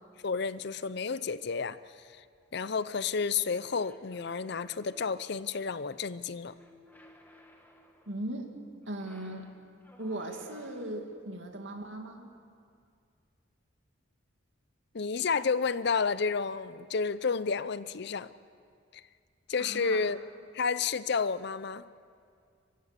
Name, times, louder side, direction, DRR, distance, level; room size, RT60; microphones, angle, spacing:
voice 1, 0.2-1.8 2.5-6.5 14.9-18.3 18.9-19.0 19.5-20.2 20.5-21.8, left 5 dB, 55° left, 15 dB, 0.6 m, -31 dB
sound 1, 3.6-5.4 6.4-8.2 8.8-11.1, left 1 dB, 10° left, 1.7 m, -57 dB
voice 2, 8.1-8.5 8.9-9.5 10.0-12.3 19.6-20.0, right 1 dB, 70° right, 3 dB, 2.3 m, -38 dB
29.5 x 15.5 x 6.8 m, 2.3 s
head